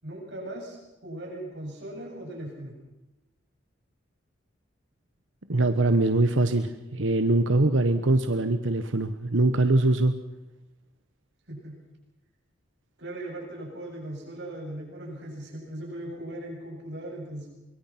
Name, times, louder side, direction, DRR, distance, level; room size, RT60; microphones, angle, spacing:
voice 1, 0.0-2.7 11.5-11.8 13.0-17.5, right 1 dB, 60° right, 0 dB, 7.9 m, -38 dB
voice 2, 5.5-10.1, right 2 dB, 85° right, 9 dB, 1.2 m, -23 dB
24.5 x 23.0 x 6.0 m, 0.97 s
head